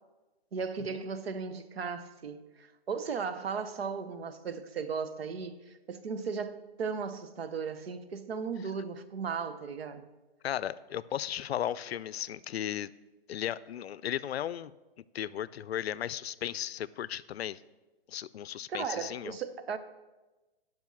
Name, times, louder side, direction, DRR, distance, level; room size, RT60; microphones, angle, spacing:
voice 1, 0.5-10.1 18.7-19.8, right 5 dB, 75° right, 1.0 m, -36 dB
voice 2, 10.4-12.9 13.3-14.7 15.1-17.6 18.1-19.3, left 10 dB, 80° left, 0.5 m, -35 dB
11.0 x 5.4 x 6.3 m
hypercardioid pair, 170°, 31 cm